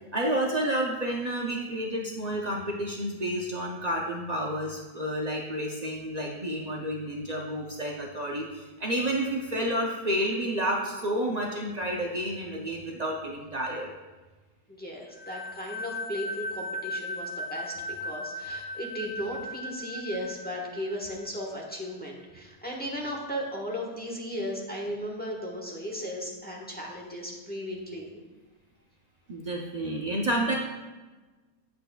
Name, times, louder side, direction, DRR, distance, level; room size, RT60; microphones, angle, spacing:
voice 1, 0.1-13.9 29.3-30.5, right 1 dB, 80° right, -1 dB, 0.3 m, -30 dB
voice 2, 14.7-17.7 18.0-28.2, equal, 5° left, -2 dB, 0.9 m, -36 dB
sound 1, 15.2-21.7, left 1 dB, 25° right, 0.7 m, -37 dB
8.4 x 7.8 x 2.3 m, 1.3 s
omnidirectional pair, 1.7 m